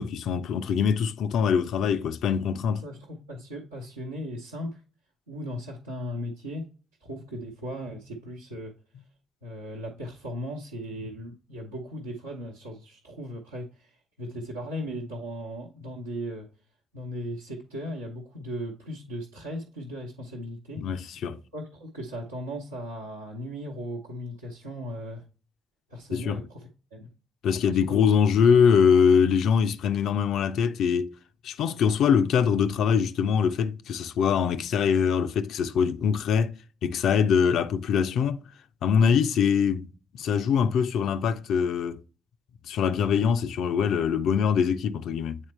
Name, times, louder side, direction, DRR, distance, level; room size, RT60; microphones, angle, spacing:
voice 1, 0.0-2.8 20.8-21.4 26.1-26.4 27.4-31.1 31.4-36.5 36.8-38.4 38.8-39.9 40.1-42.0 42.7-45.4, left 7 dB, 60° left, 0.4 m, -23 dB
voice 2, 2.7-4.8 5.3-6.6 7.0-8.7 9.4-16.5 16.9-20.8 21.5-25.2 25.9-27.1 27.7-28.0, equal, 80° right, 0.9 m, -37 dB
8.2 x 4.3 x 3.2 m
figure-of-eight pair, 40°, 0 cm